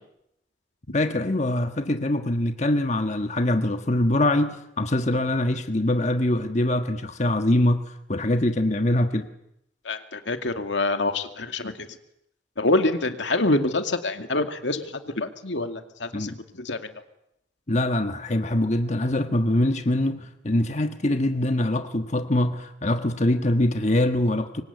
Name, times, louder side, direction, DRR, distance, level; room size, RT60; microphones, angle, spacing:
voice 1, 0.9-7.8 8.1-9.3 16.1-16.4 17.7-24.6, left 1 dB, 40° left, 1.4 m, -23 dB
voice 2, 9.8-11.9 12.6-16.8, left 2 dB, 80° left, 2.4 m, -26 dB
25.5 x 24.0 x 9.6 m
head